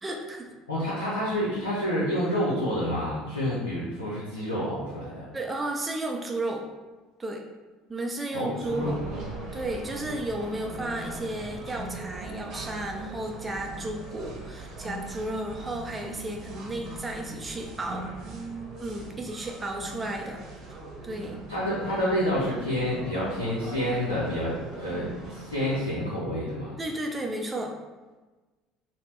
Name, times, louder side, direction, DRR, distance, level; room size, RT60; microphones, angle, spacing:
voice 1, 0.0-0.5 5.3-6.7 7.2-7.5 7.9-9.0 9.5-18.2 18.8-20.4 20.7-20.8 21.0-21.4 26.8-27.8, right 1 dB, 20° right, 2 dB, 0.5 m, -33 dB
voice 2, 0.7-5.2 8.3-9.2 21.5-26.7, equal, 80° left, -9 dB, 0.7 m, -28 dB
sound 1, 8.6-25.8, right 2 dB, 50° right, 0.9 m, -40 dB
4.0 x 2.1 x 3.2 m, 1.2 s
figure-of-eight pair, 60°, 0 cm